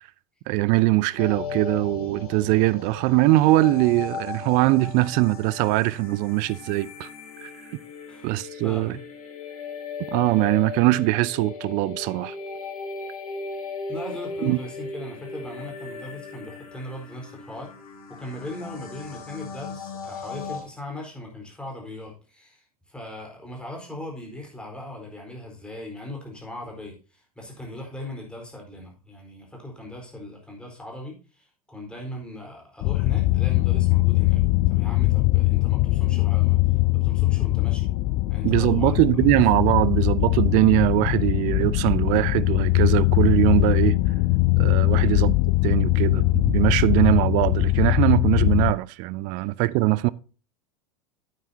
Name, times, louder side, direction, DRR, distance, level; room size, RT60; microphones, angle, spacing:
voice 1, 0.5-7.1 7.4-7.5 8.2-8.9 10.1-12.3 14.4-14.6 38.4-44.0 44.6-45.4 45.6-50.1, right 19 dB, 45° right, 0.4 m, -21 dB
sound 1, 1.2-20.6, left 5 dB, 80° left, 2.5 m, -37 dB
voice 2, 8.6-9.0 13.9-17.7 18.2-34.4 34.7-37.9 38.3-39.0 44.9-45.2 49.3-49.5, left 1 dB, 5° left, 4.3 m, -39 dB
sound 2, 32.8-48.7, left 20 dB, 40° left, 0.5 m, -21 dB
9.2 x 9.1 x 2.8 m
figure-of-eight pair, 85°, 19 cm